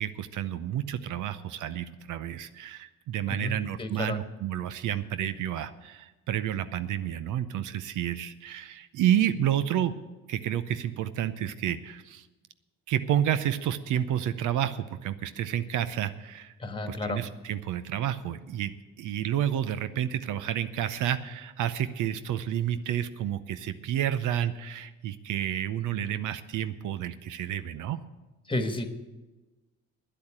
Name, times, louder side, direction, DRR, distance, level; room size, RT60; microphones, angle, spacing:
voice 1, 0.0-10.0 10.3-12.2 12.9-16.5 16.9-28.0, right 10 dB, 80° right, 12 dB, 0.7 m, -30 dB
voice 2, 3.3-4.2 16.6-17.2 28.5-28.9, left 2 dB, 15° left, 8 dB, 1.5 m, -32 dB
10.0 x 8.5 x 8.7 m, 1.1 s
cardioid pair, 90°, 30 cm